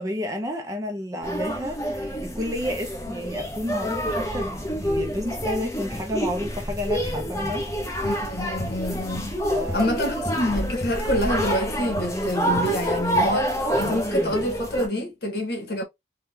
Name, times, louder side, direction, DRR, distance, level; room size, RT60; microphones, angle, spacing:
voice 1, 0.0-7.7 9.5-10.0, left 1 dB, 20° right, 0.5 m, -31 dB
sound 1, 1.2-14.9, equal, 20° left, 0.7 m, -27 dB
voice 2, 8.0-9.3 9.7-15.8, left 1 dB, 60° left, 1.3 m, -27 dB
3.5 x 2.2 x 2.7 m
head